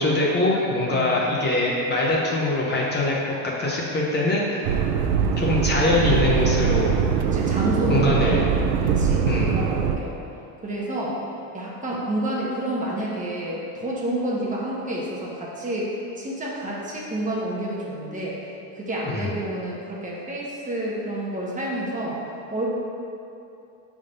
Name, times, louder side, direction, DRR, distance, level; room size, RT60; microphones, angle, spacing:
voice 1, 0.0-4.8 5.4-7.0 7.9-8.4 9.3-9.5 19.1-19.3, left 2 dB, 25° left, -4 dB, 0.8 m, -23 dB
voice 2, 0.9-1.2 7.2-8.4 8.8-10.2 10.6-11.2 11.5-18.4 18.7-22.2 22.5-22.7, right 1 dB, 20° right, -5 dB, 1.0 m, -29 dB
sound 1, 4.6-10.0, right 7 dB, 90° right, 0.6 m, -22 dB
5.4 x 3.6 x 5.2 m, 2.7 s
cardioid pair, 140°, 38 cm